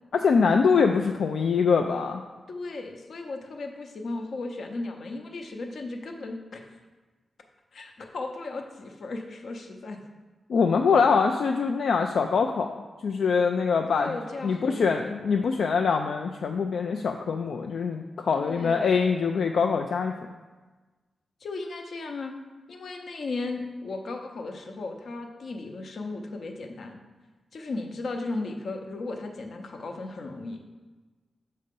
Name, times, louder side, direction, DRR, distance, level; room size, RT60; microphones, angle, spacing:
voice 1, 0.1-2.2 10.5-12.7 13.0-14.1 14.4-20.1, left 5 dB, 75° left, 4 dB, 0.3 m, -24 dB
voice 2, 2.5-6.6 7.7-10.0 13.9-14.9 18.3-19.0 21.4-22.3 22.7-27.0 27.5-30.6, left 3 dB, 60° left, 4 dB, 0.7 m, -36 dB
6.6 x 4.1 x 5.2 m, 1.3 s
wide cardioid pair, 175°, 0 cm